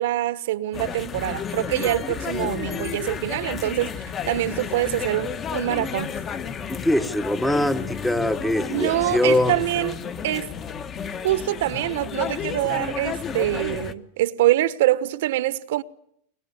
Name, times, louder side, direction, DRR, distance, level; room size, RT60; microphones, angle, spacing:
voice 1, 0.0-6.1 8.7-9.9 10.2-10.5 11.2-15.8, right 15 dB, 70° right, 1.2 m, -25 dB
sound 1, 0.7-13.9, left 7 dB, 25° left, 1.3 m, -32 dB
voice 2, 6.7-9.6, left 1 dB, 5° left, 1.2 m, -22 dB
23.5 x 23.5 x 9.6 m
supercardioid pair, 150°, 0 cm